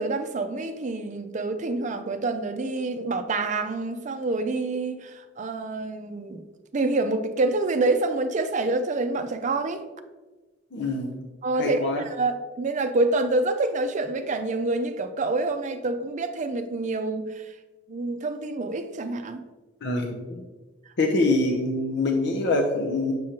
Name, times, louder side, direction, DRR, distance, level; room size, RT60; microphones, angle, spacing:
voice 1, 0.0-6.4 6.7-9.8 11.4-17.4 17.9-19.4, right 2 dB, 40° right, 8 dB, 0.5 m, -27 dB
voice 2, 10.7-11.1 11.6-12.0 19.8-20.4 21.0-23.1, left 2 dB, 65° left, 1 dB, 0.6 m, -25 dB
7.6 x 5.0 x 2.9 m, 1.2 s
head